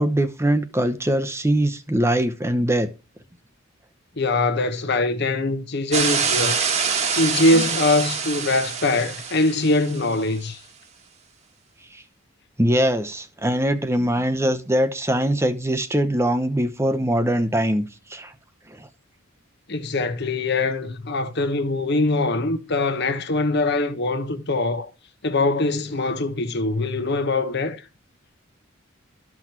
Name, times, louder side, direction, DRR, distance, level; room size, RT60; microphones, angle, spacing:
voice 1, 0.0-2.9 7.5-7.6 11.9-12.0 12.6-18.3 18.7-18.9, right 1 dB, 15° right, 0.8 m, -22 dB
voice 2, 4.2-6.6 7.1-10.6 19.7-24.9 25.2-27.8, left 2 dB, 55° left, 1.0 m, -22 dB
sound 1, 5.9-10.2, right 6 dB, 30° right, 1.3 m, -25 dB
13.0 x 6.1 x 2.9 m
head